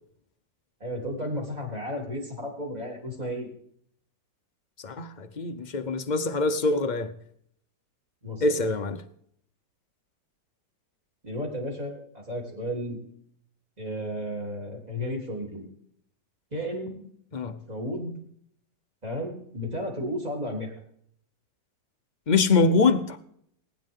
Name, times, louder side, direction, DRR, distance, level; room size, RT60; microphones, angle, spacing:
voice 1, 0.8-3.5 8.2-8.6 11.2-13.0 13.8-15.7 16.5-17.1 17.7-18.1 19.0-20.7, equal, 20° right, 3.7 m, -33 dB
voice 2, 4.8-7.1 8.4-9.0 17.3-17.6 22.3-23.2, left 3 dB, 65° left, 0.4 m, -24 dB
21.0 x 9.8 x 3.7 m
omnidirectional pair, 1.9 m